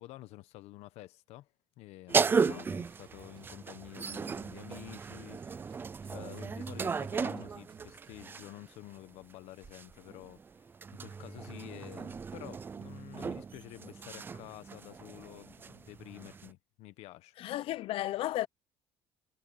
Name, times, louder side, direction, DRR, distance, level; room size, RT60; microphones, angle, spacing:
voice 1, 0.0-1.5 1.8-5.8 6.1-10.7 11.0-17.4, left 17 dB, 75° left, 1.3 m, -50 dB
sound 1, 2.1-8.7 9.6-16.5, right 5 dB, 20° right, 0.5 m, -36 dB
voice 2, 2.4-2.7 17.4-18.5, left 14 dB, 60° left, 0.7 m, -34 dB
sound 2, 3.0-8.3, right 11 dB, 45° right, 7.8 m, -59 dB
cardioid pair, 160°, 11 cm